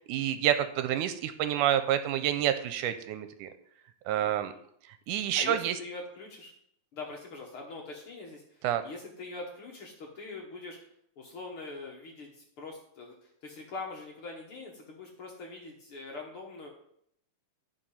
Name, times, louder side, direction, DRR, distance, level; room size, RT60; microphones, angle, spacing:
voice 1, 0.0-3.5 4.1-4.5 5.1-5.8 8.6-8.8, right 11 dB, 80° right, 10 dB, 2.1 m, -28 dB
voice 2, 4.1-4.6 5.4-6.5 6.9-10.8 11.2-16.7, left 3 dB, 50° left, 0 dB, 1.8 m, -43 dB
12.0 x 4.9 x 5.6 m, 0.69 s
omnidirectional pair, 3.7 m